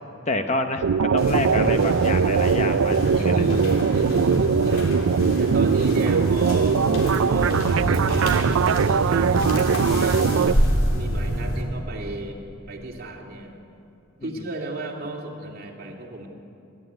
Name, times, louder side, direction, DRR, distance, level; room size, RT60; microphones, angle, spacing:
voice 1, 0.3-3.4 14.2-14.3, left 2 dB, 30° left, 7 dB, 0.9 m, -28 dB
sound 1, 0.8-10.5, right 6 dB, 75° right, 0.4 m, -21 dB
sound 2, 1.2-11.6, equal, 70° left, 3.5 m, -27 dB
voice 2, 3.0-6.8 7.3-10.7 10.9-12.4 12.7-13.6 14.2-16.3, right 2 dB, 45° right, -1 dB, 2.8 m, -35 dB
Chink clink, 6.8-11.1 11.5-12.1, right 1 dB, 5° left, 1.9 m, -41 dB
26.0 x 12.0 x 9.5 m, 2.7 s
head